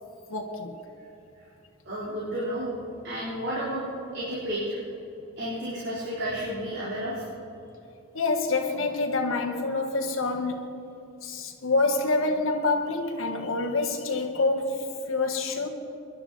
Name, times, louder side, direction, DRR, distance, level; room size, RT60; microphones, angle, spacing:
voice 1, 0.3-0.8 8.1-10.7 11.2-15.7, left 3 dB, 75° left, 1.5 m, -27 dB
voice 2, 1.9-2.7 3.0-3.9 4.1-4.8 5.4-7.3, equal, 55° right, 3.6 m, -31 dB
23.0 x 11.0 x 4.1 m
head